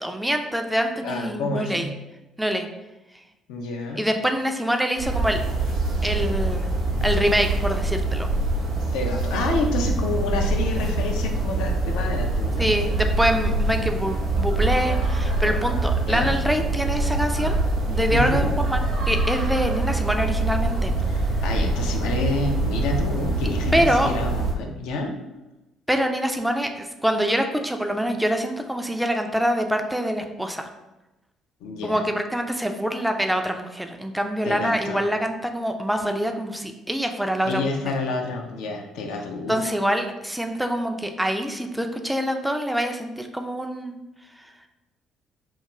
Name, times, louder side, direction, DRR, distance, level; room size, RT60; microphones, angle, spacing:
voice 1, 0.0-1.9 2.4-2.7 4.0-5.4 6.0-6.7 7.0-8.3 12.6-17.5 17.9-20.9 23.7-24.1 25.9-30.7 31.8-37.9 39.5-44.0, equal, 5° right, 5 dB, 0.3 m, -25 dB
voice 2, 1.0-1.9 3.5-4.1 8.9-12.7 16.1-16.3 18.1-18.5 21.1-25.1 31.6-32.0 34.4-35.0 37.4-39.6, left 3 dB, 70° left, 2 dB, 0.3 m, -28 dB
sound 1, 5.0-24.5, right 2 dB, 70° right, 0.6 m, -24 dB
2.3 x 2.3 x 3.0 m, 1.0 s
hypercardioid pair, 50°, 0 cm